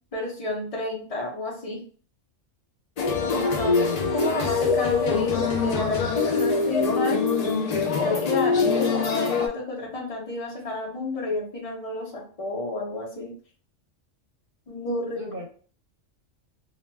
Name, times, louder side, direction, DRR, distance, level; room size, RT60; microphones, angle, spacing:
voice 1, 0.1-1.8 3.3-3.9 4.1-7.2 8.0-13.3 14.7-15.2, left 2 dB, 35° left, -2 dB, 0.7 m, -30 dB
sound 1, 3.0-9.5, left 4 dB, 90° left, 0.3 m, -24 dB
voice 2, 3.6-4.1 15.1-15.4, left 1 dB, 50° right, -4 dB, 0.9 m, -35 dB
2.4 x 2.2 x 3.1 m, 0.42 s
omnidirectional pair, 1.3 m